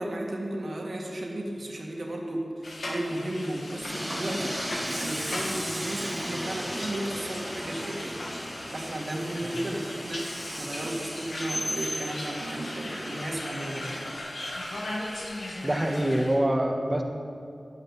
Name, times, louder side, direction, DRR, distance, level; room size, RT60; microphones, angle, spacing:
voice 1, 0.0-4.6 5.0-10.3 10.6-14.1, right 1 dB, 65° right, 0 dB, 2.1 m, -34 dB
sound 1, 2.6-16.4, left 1 dB, 80° left, 2.1 m, -38 dB
Train, 3.8-14.2, equal, 10° right, 1.9 m, -36 dB
voice 2, 15.6-17.0, right 1 dB, 25° right, 2 dB, 1.7 m, -25 dB
11.5 x 9.5 x 7.5 m, 2.4 s
cardioid pair, 45°, 0 cm